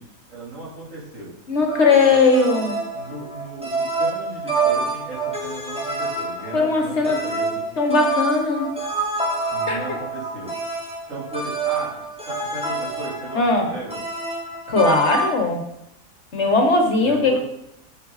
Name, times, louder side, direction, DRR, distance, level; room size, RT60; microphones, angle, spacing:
voice 1, 0.0-1.3 1.8-2.2 2.9-7.7 9.5-10.6 11.1-14.1 17.0-17.4, right 2 dB, 60° right, -8 dB, 3.8 m, -36 dB
voice 2, 1.5-2.8 6.5-7.2 7.8-8.7 9.7-10.0 13.3-13.7 14.7-15.6 16.3-17.4, left 3 dB, 55° left, 3 dB, 1.2 m, -19 dB
sound 1, 1.7-15.3, right 3 dB, 5° right, 1.6 m, -27 dB
7.5 x 7.3 x 4.0 m, 0.81 s
omnidirectional pair, 1.5 m